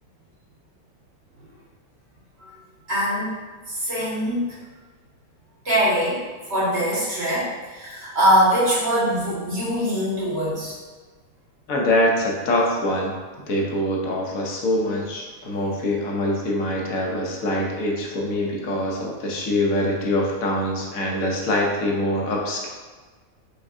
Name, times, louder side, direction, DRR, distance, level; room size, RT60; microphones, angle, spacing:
voice 1, 2.9-3.3 3.7-4.6 5.6-6.2 6.5-10.7, equal, 50° right, -9 dB, 1.7 m, -22 dB
voice 2, 11.7-13.1 13.5-22.7, left 1 dB, 80° left, -1 dB, 1.2 m, -24 dB
5.1 x 3.6 x 2.5 m, 1.3 s
omnidirectional pair, 1.4 m